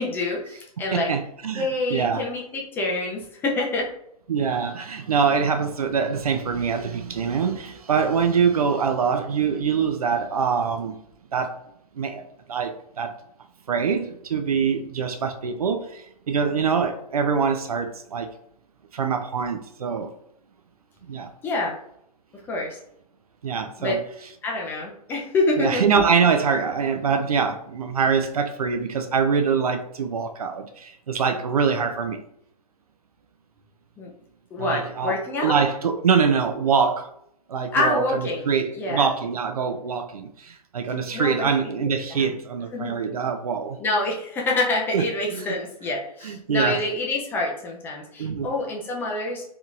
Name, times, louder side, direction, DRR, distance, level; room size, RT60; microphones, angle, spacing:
voice 1, 0.0-1.1 1.6-3.9 21.4-21.7 22.5-22.8 23.8-24.0 24.4-25.8 34.0-34.1 34.5-35.6 37.7-39.1 41.1-41.5 42.1-42.3 42.7-42.9 43.8-49.4, left 2 dB, 10° left, 0.4 m, -26 dB
voice 2, 0.9-2.2 4.3-11.0 11.3-11.6 11.9-13.1 13.7-18.3 18.9-20.1 21.1-21.3 23.4-24.0 25.6-32.2 34.6-37.1 37.5-43.8 44.9-45.0 45.3-45.6 46.2-46.8 48.2-48.5, right 6 dB, 65° right, 0.5 m, -24 dB
3.5 x 2.9 x 2.4 m
figure-of-eight pair, 120°, 20 cm